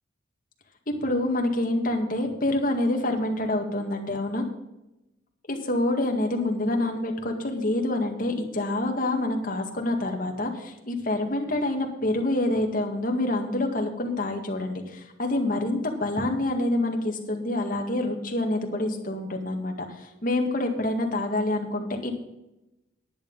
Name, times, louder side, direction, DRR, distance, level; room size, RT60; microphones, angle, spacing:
voice 1, 1.0-4.4 5.5-22.2, left 1 dB, 45° left, 2 dB, 2.0 m, -27 dB
10.5 x 9.3 x 5.5 m, 0.93 s
head